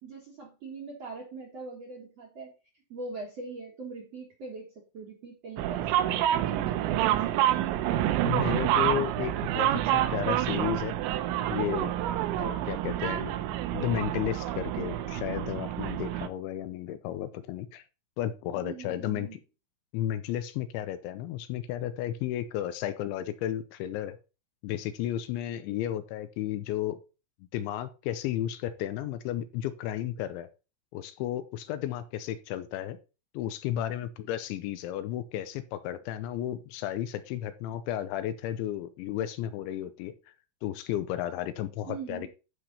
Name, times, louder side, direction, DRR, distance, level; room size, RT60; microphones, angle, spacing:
voice 1, 0.0-2.5 2.9-5.9 6.5-7.8 18.5-19.4 41.9-42.3, right 4 dB, 55° right, 1 dB, 1.8 m, -42 dB
sound 1, 5.6-16.3, right 12 dB, 80° right, 3.0 m, -28 dB
voice 2, 8.2-10.9 11.5-11.9 12.4-13.3 13.7-17.8 18.2-19.4 19.9-24.2 24.6-27.0 27.5-30.5 30.9-33.0 33.3-40.1 40.6-42.3, left 12 dB, 85° left, 12 dB, 3.0 m, -33 dB
12.0 x 5.0 x 4.2 m, 0.31 s
omnidirectional pair, 5.5 m